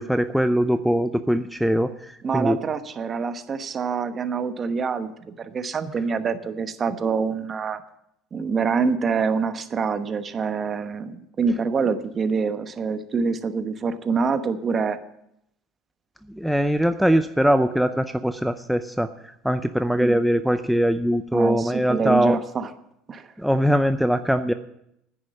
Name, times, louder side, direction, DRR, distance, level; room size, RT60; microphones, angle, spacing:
voice 1, 0.0-2.6 16.3-22.4 23.4-24.5, equal, ahead, 9 dB, 0.6 m, -22 dB
voice 2, 2.2-7.8 8.3-15.0 19.9-20.2 21.3-22.7 23.1-23.3, right 5 dB, 35° right, 10 dB, 1.1 m, -26 dB
9.9 x 9.8 x 7.4 m, 0.78 s
supercardioid pair, 95°, 0 cm